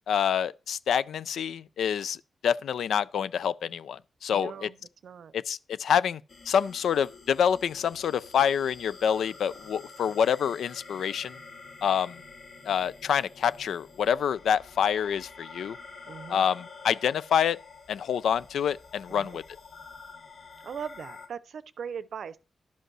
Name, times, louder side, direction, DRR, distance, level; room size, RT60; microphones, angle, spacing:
voice 1, 0.1-2.2 2.4-4.5 5.3-6.2 6.5-11.4 11.8-12.2 12.7-15.8 16.3-17.6 17.9-19.4, left 8 dB, 90° left, 0.4 m, -27 dB
voice 2, 4.3-5.3 16.1-16.4 19.1-19.4 20.6-22.4, right 7 dB, 70° right, 0.6 m, -40 dB
sound 1, 6.3-21.3, left 4 dB, 65° left, 2.7 m, -48 dB
11.5 x 5.3 x 6.2 m
wide cardioid pair, 110°, 0 cm